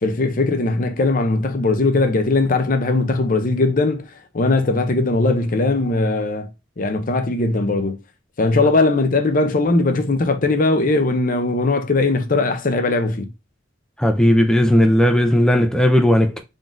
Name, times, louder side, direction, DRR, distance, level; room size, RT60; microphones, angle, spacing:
voice 1, 0.0-6.5 6.8-8.0 8.4-13.3, left 3 dB, 45° left, 0.6 m, -19 dB
voice 2, 14.0-16.4, equal, 5° left, 0.4 m, -15 dB
3.8 x 3.7 x 2.4 m
head